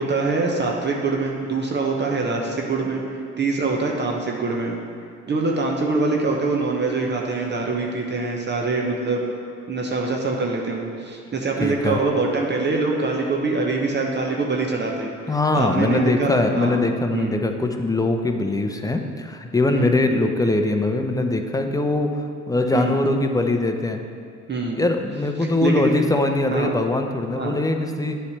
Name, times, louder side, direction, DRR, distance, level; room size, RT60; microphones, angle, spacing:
voice 1, 0.0-4.8 5.3-9.2 9.7-16.8 17.1-17.3 19.7-20.0 22.7-23.0 24.5-24.8 25.4-25.9 26.5-26.7 27.3-27.5, right 3 dB, 35° right, -1 dB, 1.0 m, -24 dB
voice 2, 11.6-12.0 15.3-24.0 24.7-28.2, left 2 dB, 10° left, 5 dB, 0.7 m, -22 dB
8.3 x 3.4 x 6.6 m, 2.3 s
supercardioid pair, 65°, 32 cm